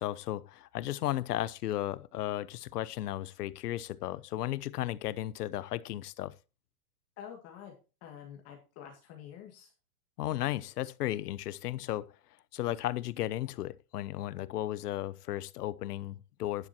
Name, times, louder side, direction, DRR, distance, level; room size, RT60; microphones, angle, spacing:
voice 1, 0.0-6.3 10.2-12.1 12.5-16.7, left 14 dB, 80° left, 0.9 m, -35 dB
voice 2, 7.2-7.7 8.0-9.7, left 9 dB, 30° left, 2.3 m, -48 dB
12.0 x 10.0 x 2.9 m
supercardioid pair, 150°, 46 cm